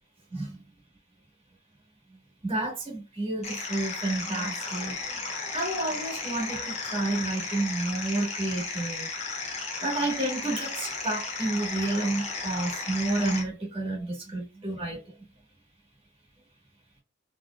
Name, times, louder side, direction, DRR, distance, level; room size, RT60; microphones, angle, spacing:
voice 1, 0.3-0.6 2.4-9.1 9.8-15.0, right 2 dB, 30° right, 1.3 m, -30 dB
sound 1, 3.4-13.4, left 4 dB, 35° left, 1.1 m, -34 dB
4.2 x 3.1 x 2.2 m
head